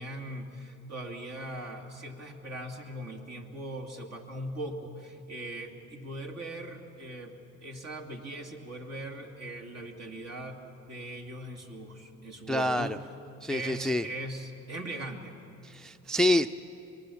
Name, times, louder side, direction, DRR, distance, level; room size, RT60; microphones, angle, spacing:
voice 1, 0.0-13.0 13.5-15.4, right 1 dB, 55° right, 2 dB, 2.6 m, -40 dB
voice 2, 12.5-12.9 13.4-14.0 15.7-16.5, left 1 dB, ahead, 12 dB, 0.4 m, -26 dB
26.0 x 20.5 x 7.1 m, 2.9 s
cardioid pair, 90°, 30 cm